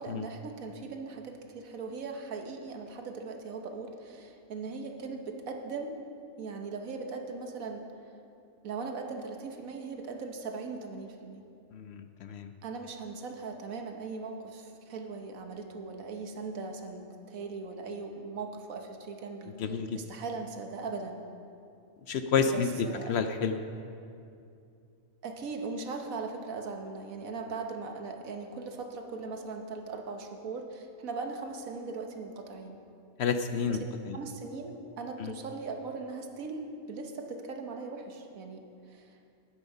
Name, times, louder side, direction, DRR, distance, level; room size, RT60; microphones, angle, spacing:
voice 1, 0.0-5.9 6.4-7.9 8.6-11.4 12.6-17.0 17.3-21.2 22.4-23.1 25.2-32.8 33.7-33.8 34.1-39.2, right 4 dB, 90° right, 4 dB, 1.5 m, -39 dB
voice 2, 11.7-12.5 19.6-20.0 22.1-22.7 23.1-23.5 33.2-33.8 34.1-34.2 35.2-35.3, left 6 dB, 65° left, 8 dB, 0.7 m, -29 dB
11.5 x 9.4 x 5.4 m, 2.6 s
omnidirectional pair, 1.4 m